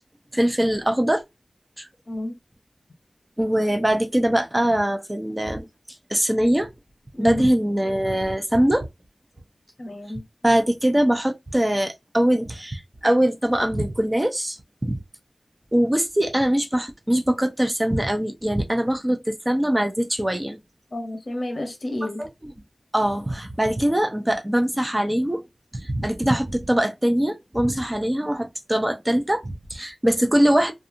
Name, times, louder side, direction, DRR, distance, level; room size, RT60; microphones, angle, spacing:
voice 1, 0.3-1.2 1.8-1.9 3.4-5.7 6.1-6.7 7.2-8.9 10.4-15.0 15.7-20.6 22.2-22.3 22.9-25.4 25.7-30.7, right 1 dB, 20° right, 0.6 m, -22 dB
voice 2, 2.1-2.4 7.1-7.4 9.8-10.2 20.9-22.2, left 1 dB, 55° left, 0.9 m, -30 dB
2.7 x 2.4 x 2.5 m
wide cardioid pair, 75°, 0 cm